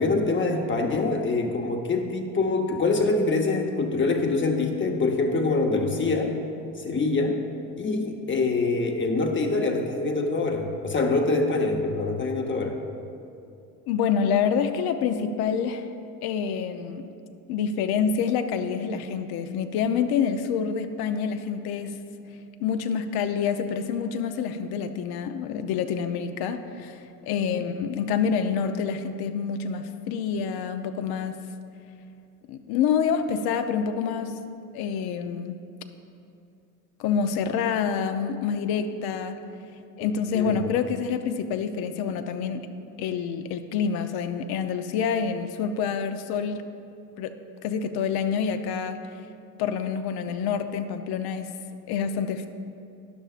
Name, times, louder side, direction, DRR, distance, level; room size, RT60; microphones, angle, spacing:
voice 1, 0.0-6.4 6.8-7.4 7.8-12.8 27.5-27.6 40.0-40.1 40.3-40.5, left 3 dB, 25° left, 2 dB, 0.9 m, -25 dB
voice 2, 13.9-15.9 16.2-17.0 17.5-21.9 22.6-31.4 32.5-34.4 34.7-35.6 37.0-39.4 40.0-42.6 43.0-46.6 47.2-47.3 47.6-49.0 49.6-51.5 51.9-52.5, left 7 dB, 60° left, 8 dB, 0.7 m, -27 dB
12.5 x 9.8 x 2.5 m, 2.5 s
supercardioid pair, 85°, 43 cm